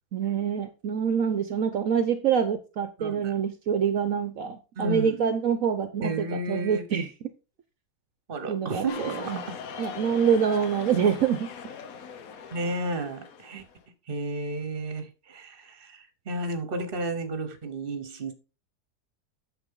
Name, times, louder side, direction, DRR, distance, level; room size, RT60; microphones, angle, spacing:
voice 1, 0.1-7.1 8.5-9.4 9.8-11.5, right 7 dB, 65° right, 1.2 m, -26 dB
voice 2, 3.0-3.4 4.8-5.2 6.0-6.9 8.3-9.6 12.5-13.6 14.1-18.3, right 2 dB, 35° right, 1.4 m, -32 dB
sound 1, 8.9-13.7, left 6 dB, 65° left, 1.3 m, -40 dB
9.0 x 7.0 x 3.8 m
omnidirectional pair, 1.7 m